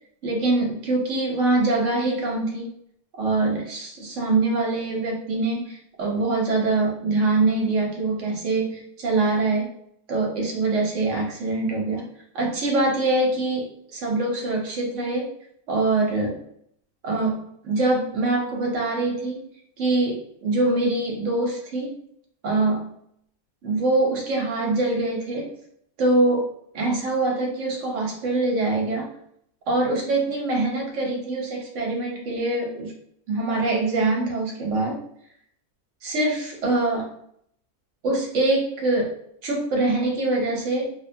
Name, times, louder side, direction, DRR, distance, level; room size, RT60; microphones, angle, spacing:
voice 1, 0.2-2.7 3.2-9.7 10.1-12.1 12.3-15.3 15.7-16.4 17.0-19.5 19.8-22.0 22.4-22.9 23.6-25.5 26.0-26.5 26.7-29.1 29.7-32.9 33.3-35.0 36.0-37.1 38.0-39.1 39.4-40.9, right 2 dB, 65° right, 0 dB, 0.9 m, -24 dB
2.6 x 2.2 x 2.5 m, 0.68 s
omnidirectional pair, 1.6 m